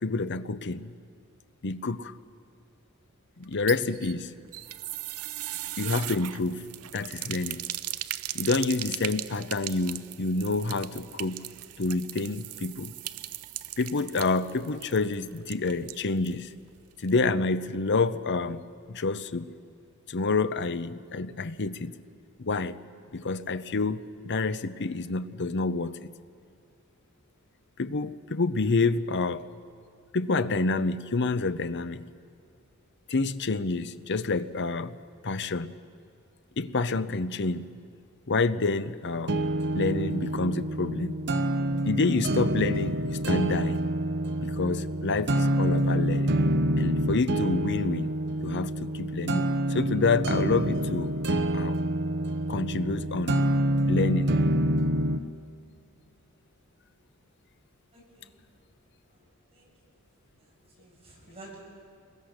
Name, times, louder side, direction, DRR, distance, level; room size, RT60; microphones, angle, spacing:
voice 1, 0.0-0.9 1.6-2.1 3.4-4.3 5.8-6.6 6.9-7.6 8.3-11.4 11.8-12.9 13.8-16.5 17.0-19.5 20.1-21.9 22.4-22.8 23.1-26.0 27.8-29.5 30.1-32.1 33.1-35.0 35.2-35.7 36.6-37.7 38.3-39.4 39.7-41.2 41.7-43.8 44.4-46.3 46.8-48.1 48.4-51.1 51.5-51.8 52.5-53.4 53.9-54.4, left 3 dB, 55° left, 13 dB, 0.8 m, -28 dB
sound 1, 3.4-16.4 16.7-16.8 17.1-17.2, right 14 dB, 80° right, 0.6 m, -38 dB
sound 2, 39.3-55.3, right 1 dB, 50° right, 1.0 m, -27 dB
voice 2, 57.9-58.4 59.1-59.2 59.5-59.7 60.4-61.6, right 2 dB, 30° right, -3 dB, 7.1 m, -51 dB
28.0 x 22.5 x 6.6 m, 2.4 s
head